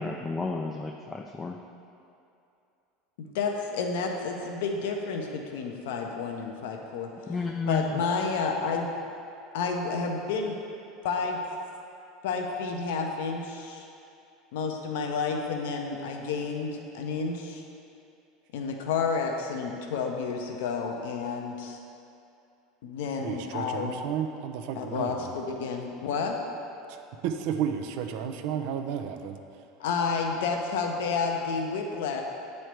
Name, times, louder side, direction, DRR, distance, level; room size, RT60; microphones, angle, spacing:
voice 1, 0.0-1.6 7.3-8.0, left 3 dB, 20° left, 2 dB, 0.3 m, -32 dB
voice 2, 3.2-7.1 7.7-8.9 9.5-10.5 11.0-11.4 12.2-13.9 14.5-17.6 18.5-21.8 22.8-23.9 24.8-26.4 29.8-32.2, left 5 dB, 70° left, 2 dB, 0.5 m, -30 dB
voice 3, 23.2-25.3 26.9-27.0 27.2-29.4, right 8 dB, 65° right, 6 dB, 0.4 m, -32 dB
7.8 x 3.2 x 4.4 m, 2.7 s
hypercardioid pair, 85°, 0 cm